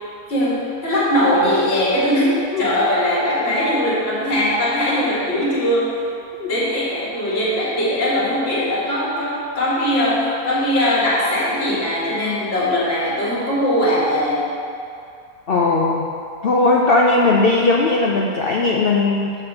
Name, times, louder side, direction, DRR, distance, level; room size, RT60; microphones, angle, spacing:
voice 1, 0.3-6.0 6.4-14.5, equal, 40° left, -8 dB, 2.1 m, -20 dB
voice 2, 15.5-16.1 16.4-19.4, left 3 dB, 70° left, -2 dB, 0.5 m, -17 dB
6.8 x 4.2 x 6.5 m, 2.5 s
omnidirectional pair, 1.6 m